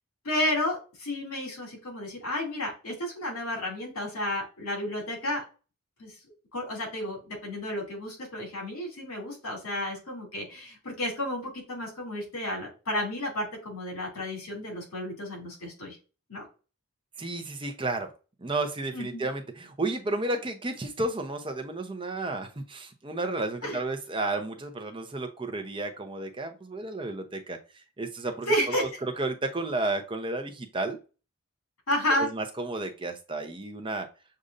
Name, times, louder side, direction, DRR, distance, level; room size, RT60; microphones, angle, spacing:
voice 1, 0.2-5.4 6.0-6.1 6.5-16.0 16.3-16.4 18.9-19.2 23.6-23.8 28.5-28.9 31.9-32.3, left 1 dB, 75° left, 0 dB, 2.4 m, -31 dB
voice 2, 17.2-18.1 18.4-27.6 28.0-31.0 32.2-34.1, right 2 dB, 25° right, 5 dB, 0.6 m, -32 dB
6.5 x 2.6 x 2.5 m, 0.32 s
head